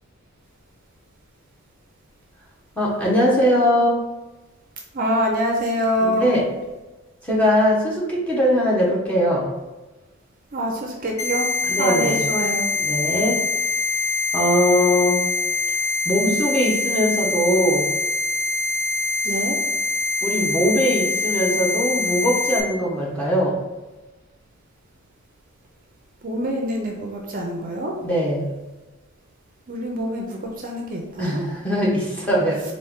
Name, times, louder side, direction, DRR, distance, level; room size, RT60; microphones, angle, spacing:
voice 1, 2.8-4.0 6.0-6.4 7.2-9.5 11.7-12.3 12.8-13.4 14.3-15.2 16.0-17.9 20.2-23.6 28.0-28.5 31.2-32.6, equal, 5° left, -5 dB, 0.9 m, -21 dB
voice 2, 4.9-6.4 10.5-11.5 11.8-12.7 19.2-19.6 26.2-28.0 29.7-31.4, equal, 40° right, 1 dB, 0.5 m, -25 dB
sound 1, 11.2-22.6, left 2 dB, 65° left, 0.7 m, -24 dB
4.4 x 2.5 x 3.5 m, 1.1 s
head